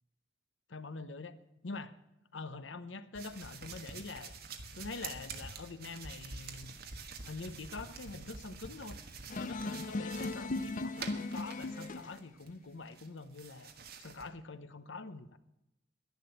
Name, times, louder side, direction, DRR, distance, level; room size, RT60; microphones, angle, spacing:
voice 1, 0.7-1.4 1.6-2.0 2.3-4.3 4.7-6.7 7.2-9.0 9.3-13.7 14.0-15.4, left 3 dB, 75° left, 12 dB, 0.9 m, -45 dB
sound 1, 3.1-12.5 12.9-14.3, right 4 dB, 55° right, 1.5 m, -47 dB
sound 2, 9.3-12.2, left 2 dB, 45° left, 0.6 m, -37 dB
11.0 x 10.5 x 7.9 m, 0.92 s
head